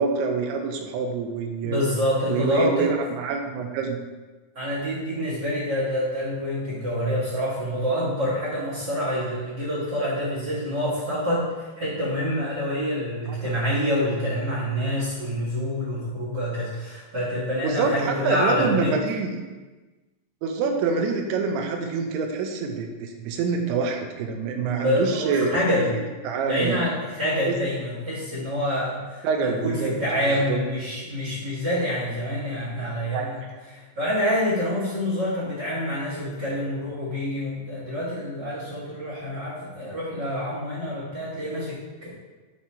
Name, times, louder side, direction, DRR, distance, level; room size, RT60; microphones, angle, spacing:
voice 1, 0.0-1.8 2.3-4.0 13.3-13.4 17.6-19.4 20.4-26.0 26.2-26.8 27.5-27.6 29.2-29.9 30.3-30.6 33.1-33.5, right 5 dB, 80° right, 3 dB, 2.7 m, -26 dB
voice 2, 1.6-2.9 4.5-18.9 24.8-25.9 26.4-33.4 33.7-42.1, equal, 60° right, -8 dB, 1.1 m, -27 dB
8.4 x 2.8 x 4.3 m, 1.3 s
omnidirectional pair, 4.8 m